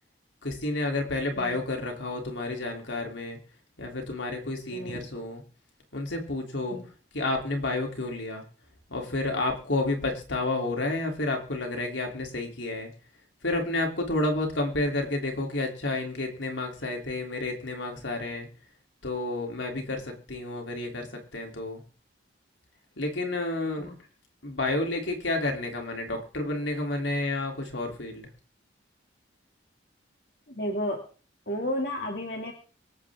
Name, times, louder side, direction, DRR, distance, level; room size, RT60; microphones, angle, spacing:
voice 1, 0.4-3.4 3.8-5.4 5.9-6.8 7.1-8.4 8.9-12.9 13.4-18.5 19.0-21.1 21.3-21.8 23.0-23.9 24.4-28.3, left 2 dB, 75° left, 2 dB, 3.2 m, -30 dB
voice 2, 30.6-31.0 31.5-32.5, equal, 55° left, 0 dB, 2.4 m, -32 dB
25.0 x 8.6 x 3.6 m, 0.40 s
head